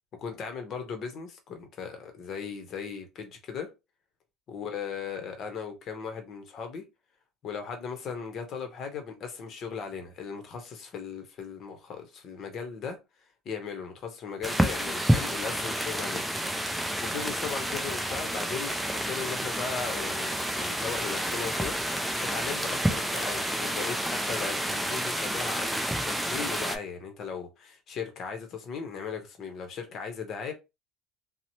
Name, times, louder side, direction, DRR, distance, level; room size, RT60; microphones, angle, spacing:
voice 1, 0.2-3.7 4.5-6.8 7.4-13.0 13.4-16.2 17.0-21.7 22.2-30.5, left 6 dB, 40° left, 0.7 m, -37 dB
sound 1, 14.4-26.8, equal, ahead, 0.4 m, -29 dB
2.8 x 2.0 x 2.8 m
cardioid pair, 145°, 0 cm